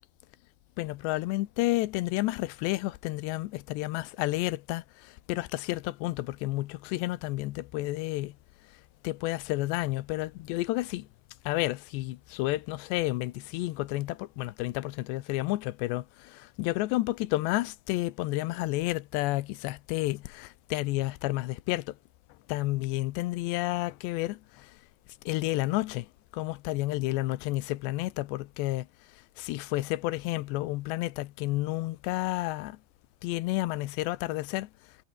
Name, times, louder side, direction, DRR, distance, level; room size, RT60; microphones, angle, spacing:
voice 1, 0.8-4.8 5.3-8.3 9.0-11.1 11.5-16.0 16.3-21.9 22.5-24.4 25.3-26.1 26.3-28.9 29.4-32.8 33.2-34.7, left 18 dB, 85° left, 3.1 m, -30 dB
omnidirectional pair, 4.9 m